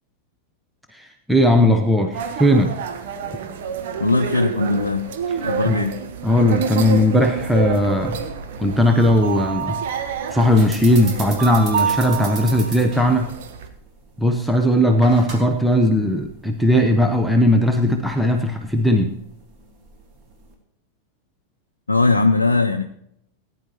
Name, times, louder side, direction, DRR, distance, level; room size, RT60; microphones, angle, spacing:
voice 1, 0.9-2.7 5.7-5.8 6.2-8.2 8.6-9.8 10.3-13.3 14.2-19.1, left 1 dB, ahead, 3 dB, 0.9 m, -18 dB
sound 1, 2.1-13.7, right 6 dB, 55° right, 1.3 m, -28 dB
voice 2, 4.0-5.1 5.4-6.0 21.9-22.8, left 3 dB, 80° left, 5 dB, 0.6 m, -19 dB
sound 2, 10.5-20.5, right 3 dB, 35° right, 2.9 m, -39 dB
18.5 x 9.8 x 3.0 m, 0.74 s
figure-of-eight pair, 90°, 0 cm